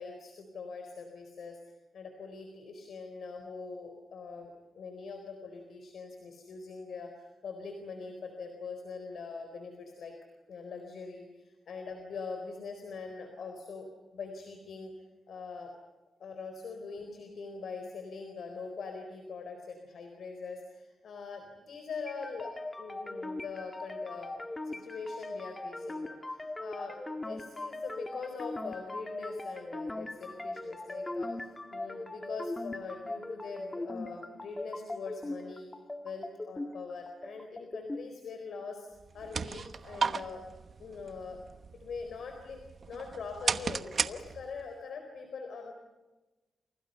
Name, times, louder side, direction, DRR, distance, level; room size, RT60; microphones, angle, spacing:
voice 1, 0.0-10.1 10.5-14.9 15.3-15.7 16.2-22.5 22.8-35.7 36.0-38.9 39.1-40.4 40.8-41.4 41.8-42.6 42.9-45.7, left 4 dB, 70° left, 5 dB, 4.3 m, -43 dB
sound 1, 22.1-38.1, left 2 dB, 20° left, 1.8 m, -40 dB
sound 2, 39.0-44.7, right 5 dB, 50° right, 1.1 m, -36 dB
30.0 x 28.0 x 5.7 m, 1.1 s
cardioid pair, 90°, 0 cm